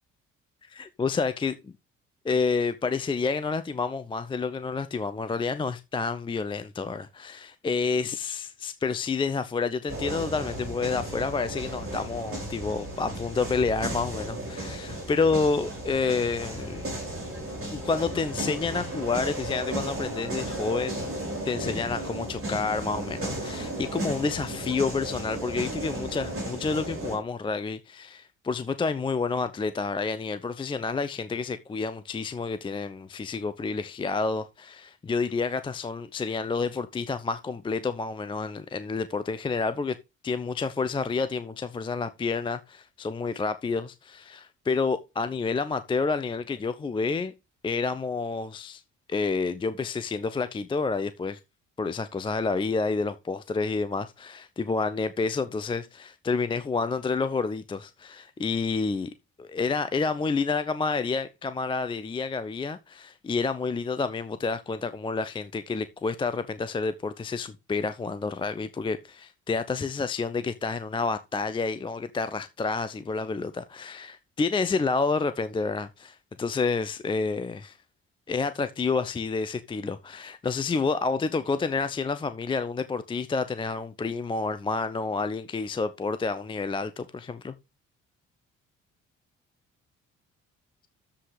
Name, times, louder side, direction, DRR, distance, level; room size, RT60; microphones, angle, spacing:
voice 1, 0.7-1.7 2.2-16.8 17.7-21.1 21.5-40.0 40.2-47.3 47.6-48.8 49.1-51.4 51.8-59.1 59.4-77.8 78.3-87.5, left 4 dB, 15° left, 0.4 m, -29 dB
sound 1, 9.9-27.2, right 1 dB, 35° right, 5.8 m, -34 dB
10.5 x 7.4 x 3.3 m
figure-of-eight pair, 45°, 37 cm